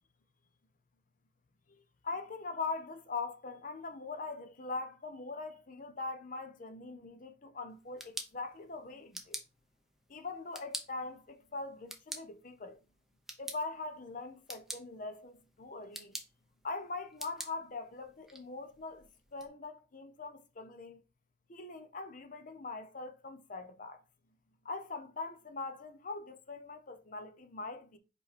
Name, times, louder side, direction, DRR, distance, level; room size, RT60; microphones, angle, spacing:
voice 1, 1.7-9.4 10.1-12.8 13.4-16.2 16.6-21.0 21.5-24.0 24.6-28.0, left 3 dB, 45° left, 0.8 m, -42 dB
sound 1, 7.7-19.5, right 1 dB, ahead, 0.8 m, -48 dB
5.0 x 4.8 x 4.2 m
head